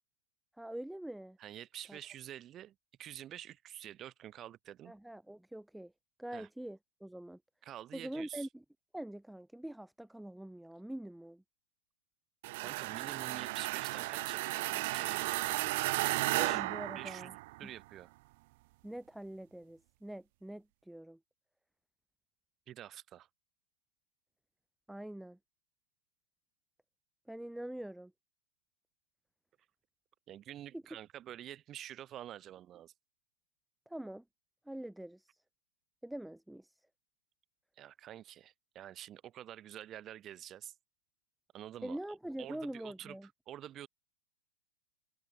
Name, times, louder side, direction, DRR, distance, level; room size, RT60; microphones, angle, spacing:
voice 1, 0.6-1.4 1.9-2.0 4.9-5.9 6.2-7.4 7.9-8.6 8.9-11.4 16.3-17.3 18.8-21.2 24.9-25.4 27.3-28.1 30.7-30.8 33.9-34.2 34.7-35.4 36.0-36.7 41.8-43.3, right 1 dB, 5° right, 0.8 m, -44 dB
voice 2, 1.4-4.9 6.3-6.5 7.6-8.5 12.6-16.6 16.9-17.3 17.6-18.1 22.7-23.3 30.3-32.9 37.8-40.7 41.5-42.0 42.4-43.9, right 12 dB, 30° right, 1.4 m, -48 dB
sound 1, 12.4-17.7, right 22 dB, 55° right, 0.9 m, -34 dB
hypercardioid pair, 120°, 0 cm